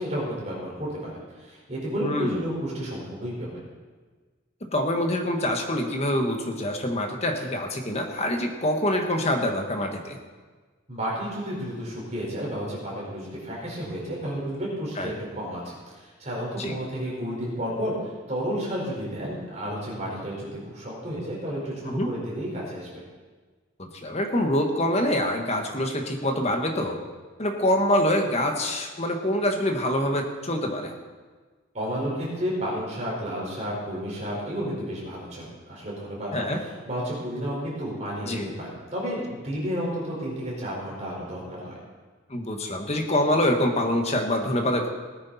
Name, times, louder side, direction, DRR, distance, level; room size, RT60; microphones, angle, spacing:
voice 1, 0.0-3.6 10.9-22.9 31.7-41.8, equal, 35° right, -4 dB, 4.7 m, -32 dB
voice 2, 2.0-2.4 4.7-10.2 15.0-15.1 16.6-16.7 21.9-22.1 23.8-27.0 27.4-30.9 36.3-36.6 38.2-38.5 42.3-44.9, left 1 dB, 30° left, 3 dB, 1.4 m, -25 dB
18.5 x 9.7 x 4.2 m, 1.4 s
head